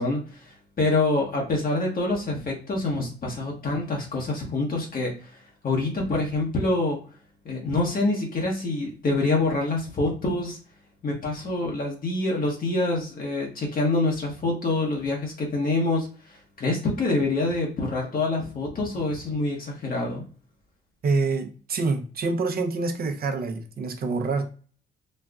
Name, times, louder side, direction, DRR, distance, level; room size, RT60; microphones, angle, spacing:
voice 1, 0.0-5.4 5.6-7.0 7.4-10.6 11.0-20.2, left 2 dB, 45° left, -1 dB, 1.0 m, -26 dB
voice 2, 21.0-24.5, right 3 dB, 50° right, 5 dB, 0.7 m, -26 dB
4.2 x 2.3 x 2.4 m, 0.39 s
cardioid pair, 90°, 20 cm